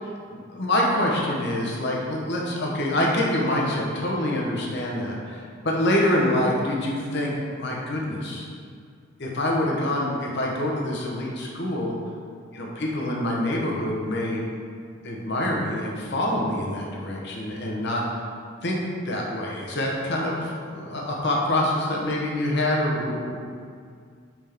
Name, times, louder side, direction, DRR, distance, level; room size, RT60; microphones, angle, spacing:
voice 1, 0.0-8.5 9.2-12.0 12.5-14.4 15.0-18.0 18.6-18.8 19.1-23.4, left 1 dB, 50° left, -2 dB, 1.0 m, -26 dB
5.7 x 5.0 x 3.5 m, 2.2 s
head